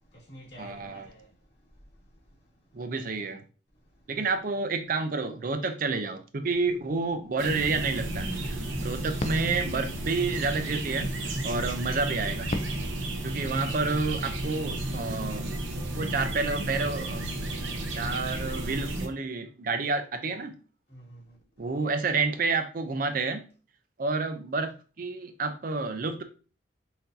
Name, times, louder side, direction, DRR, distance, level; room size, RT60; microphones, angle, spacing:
voice 1, 0.0-2.8 3.9-4.0 20.9-21.4, equal, 65° left, 2.1 m, -51 dB
voice 2, 0.6-1.1 2.7-3.4 4.1-12.5 13.2-15.5 16.0-17.3 18.0-20.5 21.6-23.4 24.0-26.2, right 4 dB, 50° right, 0.5 m, -29 dB
sound 1, 6.5-14.2, left 2 dB, 35° left, 0.4 m, -42 dB
sound 2, 7.4-19.1, right 1 dB, 90° right, 0.7 m, -33 dB
5.8 x 2.6 x 2.6 m
head